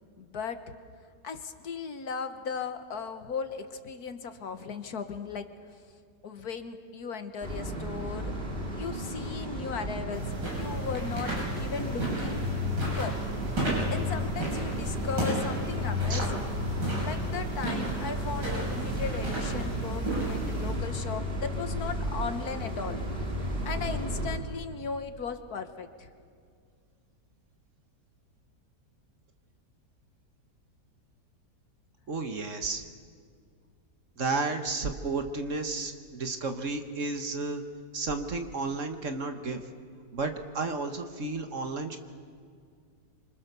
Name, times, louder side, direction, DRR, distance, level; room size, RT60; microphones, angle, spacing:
voice 1, 0.2-0.6 1.2-5.5 6.2-8.3 8.7-10.2 10.5-13.2 13.9-16.5 17.0-23.0 23.7-26.1, left 5 dB, 60° left, 9 dB, 1.7 m, -37 dB
sound 1, 7.4-24.4, left 1 dB, 30° right, 2.6 m, -33 dB
sound 2, 10.1-20.7, right 2 dB, 80° right, 7.5 m, -34 dB
voice 2, 32.1-32.8 34.2-37.6 37.9-39.6 40.1-42.0, right 3 dB, 50° right, 7 dB, 1.6 m, -32 dB
27.0 x 25.5 x 6.8 m, 2.2 s
omnidirectional pair, 1.9 m